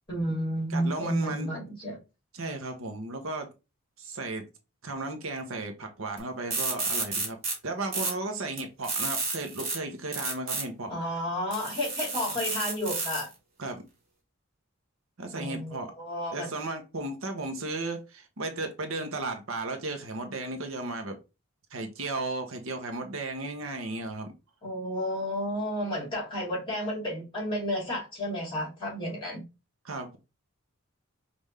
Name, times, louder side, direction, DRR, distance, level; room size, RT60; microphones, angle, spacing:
voice 1, 0.1-2.0 10.9-13.3 15.3-16.5 24.6-29.4, equal, 20° left, 2.6 m, -31 dB
voice 2, 0.7-1.5 2.3-3.5 4.0-4.4 4.8-7.4 7.6-10.9 13.6-13.8 15.2-15.9 16.3-21.2 21.7-24.3 29.8-30.2, right 2 dB, 70° right, 0.9 m, -35 dB
sound 1, 6.2-6.3 6.5-7.5 7.9-8.1 8.6-9.8 10.1-10.6 11.5-13.3, right 4 dB, 30° right, 1.6 m, -31 dB
5.4 x 2.6 x 3.2 m
head